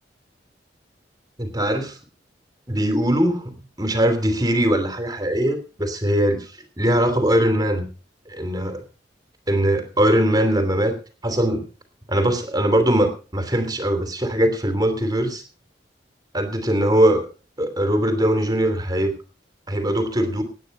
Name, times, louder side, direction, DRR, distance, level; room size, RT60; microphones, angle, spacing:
voice 1, 1.4-2.0 2.7-3.5 3.8-6.4 6.8-7.9 8.3-8.8 9.5-10.9 11.2-11.6 12.1-15.4 16.3-17.3 17.6-19.1 19.7-20.4, right 1 dB, 20° right, 7 dB, 3.1 m, -21 dB
19.0 x 9.5 x 5.4 m, 0.36 s
head